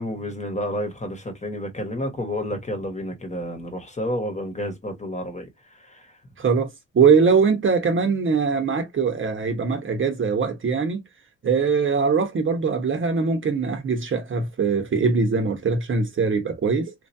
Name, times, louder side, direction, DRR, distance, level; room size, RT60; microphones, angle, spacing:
voice 1, 0.0-5.5, left 1 dB, 25° left, 1.3 m, -30 dB
voice 2, 6.4-6.7 6.9-11.0 11.4-16.9, right 5 dB, 40° right, 1.0 m, -21 dB
3.0 x 2.6 x 2.6 m
cardioid pair, 90°, 30 cm